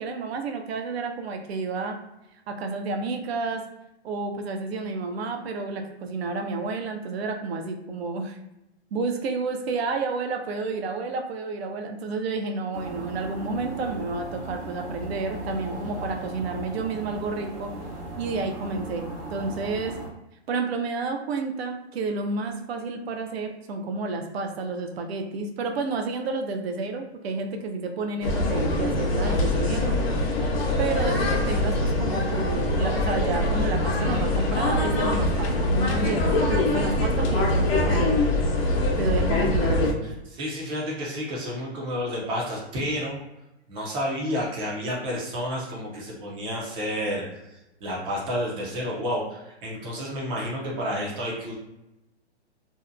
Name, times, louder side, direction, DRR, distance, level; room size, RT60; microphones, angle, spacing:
voice 1, 0.0-2.0 2.5-3.6 4.0-8.4 8.9-17.7 18.2-20.0 20.5-30.0 30.8-38.2 39.0-39.9, right 3 dB, 65° right, 4 dB, 0.6 m, -30 dB
sound 1, 12.7-20.1, right 1 dB, 85° right, 0.9 m, -37 dB
sound 2, 28.2-39.9, left 1 dB, 65° left, 0.8 m, -23 dB
voice 2, 40.0-43.2 43.7-51.5, equal, 15° right, -2 dB, 0.4 m, -30 dB
2.7 x 2.1 x 2.4 m, 0.92 s
hypercardioid pair, 135°, 34 cm